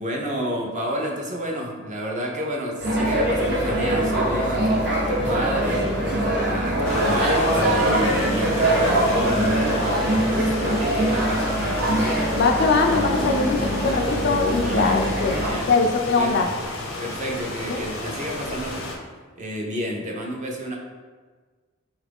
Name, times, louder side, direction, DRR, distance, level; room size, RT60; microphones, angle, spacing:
voice 1, 0.0-11.6 11.9-12.3 14.5-15.7 16.2-16.4 17.0-18.9 19.4-20.8, equal, 35° right, 0 dB, 0.5 m, -30 dB
sound 1, 2.8-15.5, right 1 dB, 55° right, 0.9 m, -23 dB
Wind instrument woodwind instrument, 6.0-9.0 9.3-13.1, right 2 dB, 90° right, 0.6 m, -38 dB
sound 2, 6.8-19.0, left 2 dB, 85° left, 0.7 m, -33 dB
voice 2, 12.4-15.4 15.7-16.5 17.7-17.8, left 4 dB, 55° left, 4 dB, 0.3 m, -22 dB
3.7 x 2.4 x 3.4 m, 1.4 s
head